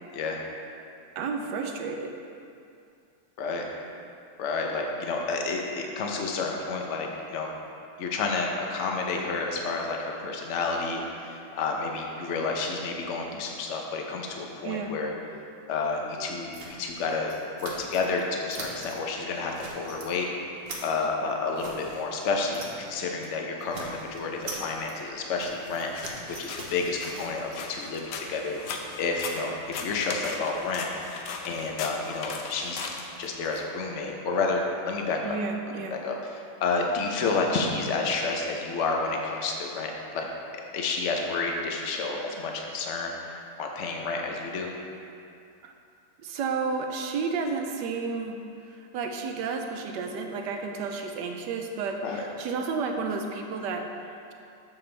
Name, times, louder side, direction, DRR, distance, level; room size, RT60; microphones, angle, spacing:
voice 1, 1.2-2.1 14.6-14.9 35.2-36.0 45.6-45.7 46.2-54.3, right 4 dB, 80° right, 4 dB, 1.3 m, -32 dB
voice 2, 4.4-7.5 8.0-15.1 15.7-16.5 16.8-17.3 17.6-20.3 20.8-30.9 31.4-32.8 33.2-35.4 35.9-40.3 40.7-44.7 52.0-52.2, left 4 dB, 55° left, 1 dB, 0.9 m, -30 dB
sound 1, 16.5-18.2 18.5-19.0 19.3-20.1 20.4-22.9 23.2-23.3 23.6-27.6, right 2 dB, 40° right, 1.0 m, -43 dB
sound 2, 25.9-33.6, left 4 dB, 75° left, 1.2 m, -38 dB
7.7 x 7.0 x 3.3 m, 2.5 s
omnidirectional pair, 1.9 m